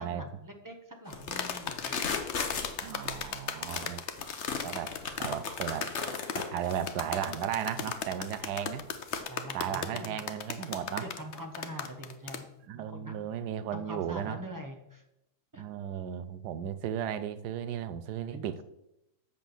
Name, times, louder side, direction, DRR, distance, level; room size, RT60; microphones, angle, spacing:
voice 1, 0.0-2.0 9.3-10.2 10.6-12.5 12.7-13.3 13.7-15.1 15.5-15.6 18.3-18.6, equal, 20° right, 0.5 m, -44 dB
sound 1, 1.1-9.2, left 5 dB, 45° left, 1.0 m, -37 dB
sound 2, 1.4-12.4, left 7 dB, 90° left, 0.6 m, -37 dB
voice 2, 2.8-4.0 4.6-4.9 5.2-5.9 6.3-8.9 9.5-11.1 12.7-14.4 15.6-18.6, right 9 dB, 70° right, 1.0 m, -35 dB
7.1 x 6.0 x 6.9 m
omnidirectional pair, 2.1 m